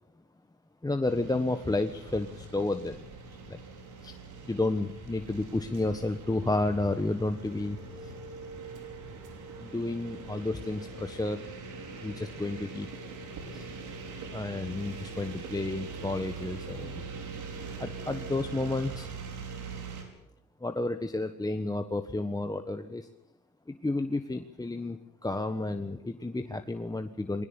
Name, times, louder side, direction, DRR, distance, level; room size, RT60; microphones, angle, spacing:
voice 1, 0.8-3.0 3.5-3.6 4.0-4.2 4.4-8.1 9.6-11.4 12.0-12.9 13.5-13.7 14.3-17.0 17.8-19.1 20.6-23.1 23.7-27.5, left 2 dB, 10° left, 7 dB, 1.3 m, -31 dB
sound 1, 1.0-20.0, right 4 dB, 85° right, 5.0 m, -42 dB
21.0 x 19.0 x 8.8 m, 0.87 s
cardioid pair, 90°, 30 cm